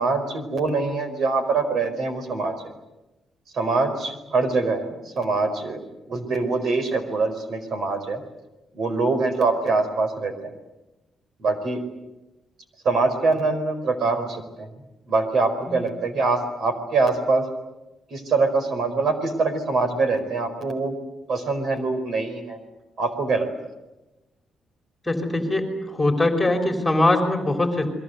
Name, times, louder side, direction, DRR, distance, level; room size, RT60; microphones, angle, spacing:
voice 1, 0.0-2.6 3.5-5.8 6.1-8.2 8.7-10.5 11.4-11.8 12.8-14.7 15.1-17.4 18.1-20.9 21.3-22.6 23.0-23.5, right 3 dB, 55° right, 8 dB, 4.8 m, -24 dB
voice 2, 25.0-27.9, left 2 dB, 10° left, 3 dB, 3.4 m, -22 dB
29.5 x 22.5 x 7.9 m, 1.0 s
cardioid pair, 155°, 0 cm